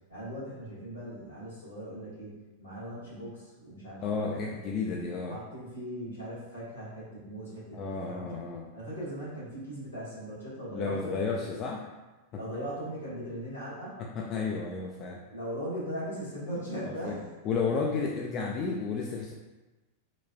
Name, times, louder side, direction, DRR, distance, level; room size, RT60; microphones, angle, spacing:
voice 1, 0.1-4.6 5.3-8.4 8.7-11.2 12.4-14.0 15.3-17.3, equal, 75° left, -9 dB, 1.4 m, -39 dB
voice 2, 4.0-5.4 7.7-8.6 10.7-11.9 12.3-12.6 14.0-15.2 17.0-17.2 17.4-19.3, left 4 dB, 35° left, -1 dB, 0.3 m, -32 dB
3.9 x 2.3 x 2.2 m, 1.1 s
figure-of-eight pair, 90°, 0 cm